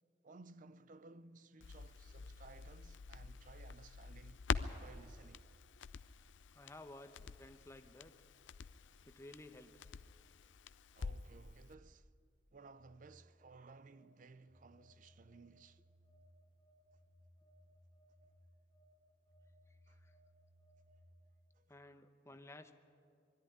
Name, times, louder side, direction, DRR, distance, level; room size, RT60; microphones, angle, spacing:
voice 1, 0.2-4.4 4.8-5.5 10.9-12.1 12.5-15.8 19.9-20.0 21.5-21.7, right 3 dB, 45° right, 0.5 m, -59 dB
Crackle, 1.6-11.4 11.7-11.8, left 5 dB, 80° left, 0.5 m, -46 dB
voice 2, 6.5-8.1 9.1-9.9 19.9-20.1 21.7-22.7, left 1 dB, 15° left, 0.9 m, -55 dB
Telephone, 12.6-21.2, equal, 80° right, 6.0 m, -66 dB
21.0 x 13.5 x 10.0 m
head